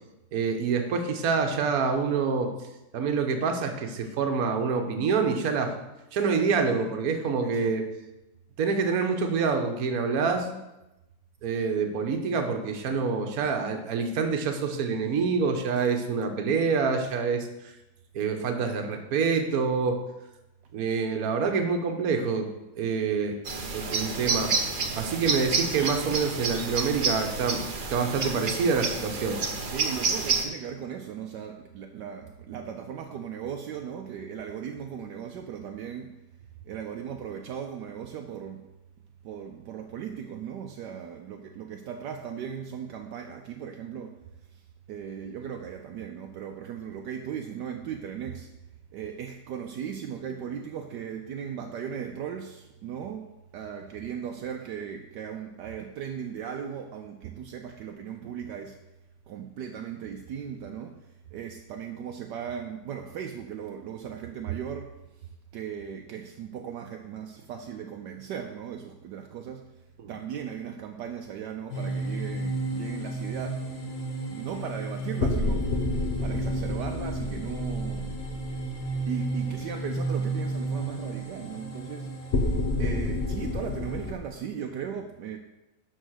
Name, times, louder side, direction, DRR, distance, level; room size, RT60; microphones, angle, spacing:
voice 1, 0.3-2.5 2.9-5.8 6.1-7.9 8.6-10.5 11.4-17.5 18.1-20.0 20.7-22.5 22.7-23.4 23.7-24.6 24.9-27.6 27.9-29.4 70.0-70.1, right 5 dB, 60° right, 5 dB, 1.4 m, -26 dB
sound 1, 23.4-30.4, right 4 dB, 45° right, 0.7 m, -29 dB
voice 2, 29.6-36.1 36.6-38.7 39.2-44.2 44.5-48.5 48.9-58.8 59.3-69.7 70.1-73.7 74.3-78.1 79.1-85.4, right 8 dB, 75° right, 4 dB, 1.2 m, -37 dB
sound 2, 71.7-84.1, right 3 dB, 75° left, 2.6 m, -33 dB
sound 3, 72.0-72.4 75.2-79.5 82.3-84.2, left 3 dB, 40° left, 1.2 m, -30 dB
11.0 x 4.0 x 6.4 m, 0.97 s
omnidirectional pair, 1.9 m